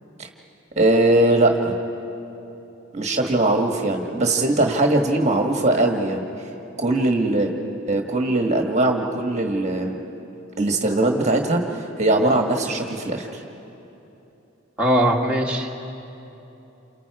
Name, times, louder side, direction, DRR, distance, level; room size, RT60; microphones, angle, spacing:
voice 1, 0.8-1.8 2.9-6.2 6.8-7.5 7.9-9.9 10.6-13.4, right 2 dB, 35° right, 2 dB, 1.5 m, -20 dB
voice 2, 14.8-15.7, equal, 5° right, -3 dB, 1.9 m, -20 dB
29.5 x 27.5 x 4.8 m, 3.0 s
head